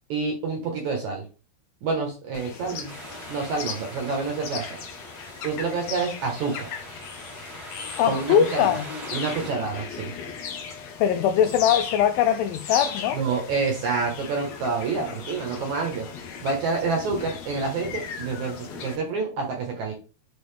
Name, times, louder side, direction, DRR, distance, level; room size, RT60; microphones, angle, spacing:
voice 1, 0.1-1.2 1.8-3.0 3.3-4.8 5.4-6.7 8.1-8.7 9.1-10.1 13.1-16.1 16.4-19.9, right 4 dB, 60° right, 2.1 m, -28 dB
sound 1, 2.3-19.0, left 6 dB, 70° left, 1.7 m, -37 dB
sound 2, 2.9-9.5, right 2 dB, 10° right, 1.4 m, -43 dB
voice 2, 8.0-8.9 11.0-13.2, left 9 dB, 90° left, 2.1 m, -21 dB
7.7 x 3.7 x 3.4 m
omnidirectional pair, 4.7 m